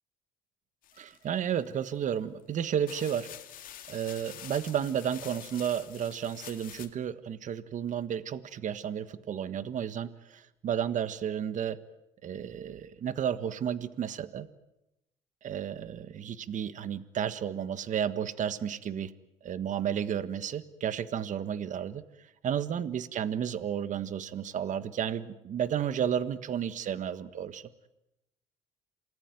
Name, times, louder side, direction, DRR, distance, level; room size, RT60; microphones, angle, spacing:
sound 1, 0.8-1.7 2.4-2.5 2.9-6.9, left 11 dB, 65° left, 2.4 m, -47 dB
voice 1, 1.0-3.3 3.9-11.8 12.2-14.5 15.4-19.1 19.4-22.0 22.4-27.7, right 9 dB, 55° right, 13 dB, 1.5 m, -32 dB
28.0 x 19.5 x 9.2 m, 0.89 s
supercardioid pair, 85°, 15 cm